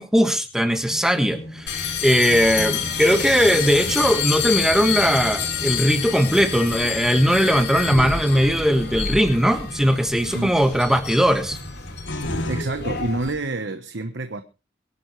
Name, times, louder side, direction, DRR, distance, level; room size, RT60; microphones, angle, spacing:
voice 1, 0.0-11.6, equal, 5° right, 1.5 m, -19 dB
sound 1, 0.9-12.6, left 1 dB, 85° left, 2.8 m, -36 dB
sound 2, 0.9-9.4, right 1 dB, 30° right, 2.1 m, -40 dB
sound 3, 1.7-13.3, left 7 dB, 60° left, 3.4 m, -28 dB
voice 2, 12.5-14.4, right 2 dB, 70° right, 1.1 m, -28 dB
23.5 x 11.0 x 3.2 m
head